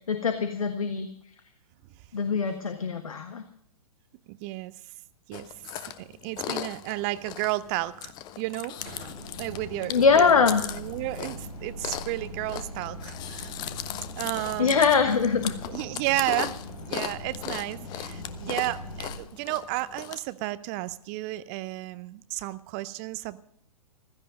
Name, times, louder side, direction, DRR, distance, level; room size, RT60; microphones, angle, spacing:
voice 1, 0.1-1.1 2.1-3.4 9.9-10.6 14.6-15.5, left 5 dB, 65° left, 8 dB, 1.4 m, -22 dB
voice 2, 4.3-4.7 5.3-5.5 5.8-10.4 10.7-13.5 14.2-14.8 15.7-23.4, right 18 dB, 25° right, 18 dB, 0.6 m, -32 dB
Chewing mastication, 5.3-20.2, left 12 dB, 20° left, 0.7 m, -38 dB
sound 1, 8.8-19.2, left 1 dB, 80° left, 4.9 m, -41 dB
15.5 x 13.5 x 5.2 m, 0.68 s
figure-of-eight pair, 115°, 19 cm